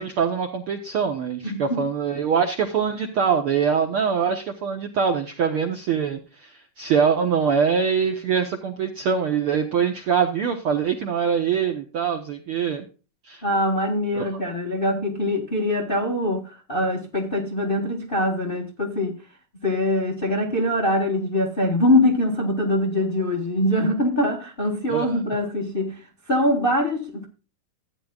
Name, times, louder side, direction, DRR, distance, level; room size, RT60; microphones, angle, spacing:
voice 1, 0.0-12.9 13.3-13.4 14.1-14.4 24.9-25.2, right 6 dB, 65° right, 1.3 m, -23 dB
voice 2, 1.4-1.9 13.4-19.2 19.6-27.3, left 1 dB, 30° left, 0.9 m, -23 dB
14.5 x 9.2 x 2.4 m
omnidirectional pair, 3.6 m